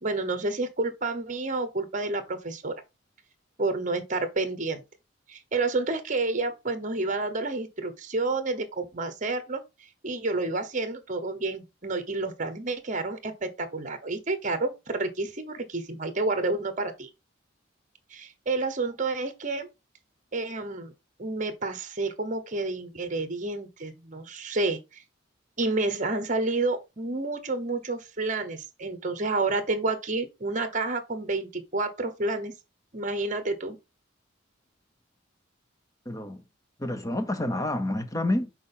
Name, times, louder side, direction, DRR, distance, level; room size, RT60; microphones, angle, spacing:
voice 1, 0.0-2.7 3.6-4.8 5.3-9.6 10.0-17.1 18.1-19.7 20.3-20.9 21.2-25.0 25.6-32.5 32.9-33.8, right 3 dB, 40° right, 1.0 m, -29 dB
voice 2, 36.1-36.4 36.8-38.5, left 1 dB, 15° left, 0.8 m, -28 dB
6.2 x 4.4 x 3.9 m
head